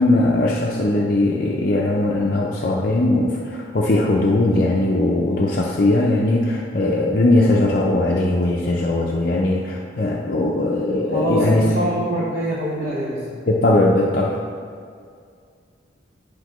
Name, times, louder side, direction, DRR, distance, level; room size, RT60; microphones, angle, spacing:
voice 1, 0.0-11.7 13.5-14.4, left 2 dB, 50° left, -3 dB, 0.5 m, -19 dB
voice 2, 11.1-13.2, equal, 50° right, -8 dB, 1.2 m, -24 dB
10.0 x 5.2 x 3.0 m, 2.2 s
head